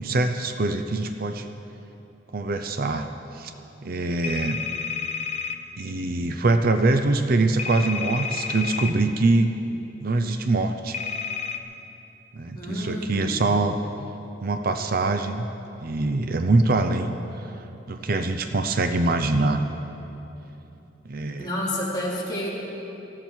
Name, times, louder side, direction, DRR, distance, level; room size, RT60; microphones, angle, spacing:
voice 1, 0.0-1.5 2.3-3.1 3.3-3.5 3.8-4.6 5.8-9.5 10.0-11.0 12.3-13.8 14.4-15.5 15.8-17.1 17.9-19.6 21.0-21.5, right 2 dB, 55° right, 7 dB, 0.7 m, -23 dB
sound 1, 4.2-5.6 7.6-8.9 10.9-11.6, left 6 dB, 40° left, 0.8 m, -30 dB
voice 2, 12.5-13.7 21.4-22.5, left 1 dB, 25° left, -6 dB, 3.2 m, -29 dB
19.5 x 14.0 x 4.6 m, 3.0 s
head